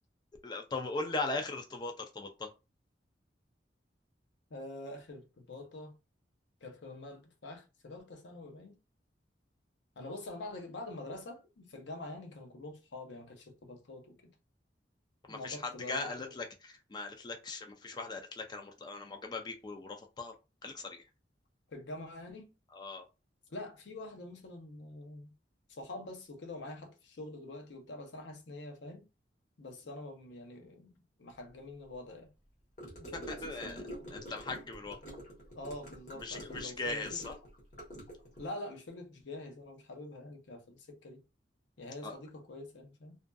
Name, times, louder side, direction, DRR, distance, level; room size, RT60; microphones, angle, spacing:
voice 1, 0.4-2.5 15.3-20.3 20.6-21.0 22.7-23.0 33.3-33.8 34.1-35.0 36.2-37.4 42.0-42.2, left 3 dB, 25° left, 0.3 m, -39 dB
voice 2, 4.5-5.9 6.6-8.8 10.0-14.3 15.3-16.4 21.7-22.5 23.5-25.3 25.7-29.1 29.6-32.3 33.0-34.1 35.5-37.2 38.4-41.2 41.8-43.2, left 2 dB, 80° left, 0.6 m, -46 dB
Gurgling / Car passing by / Sink (filling or washing), 32.8-38.5, equal, 45° left, 0.9 m, -47 dB
2.5 x 2.4 x 2.2 m
head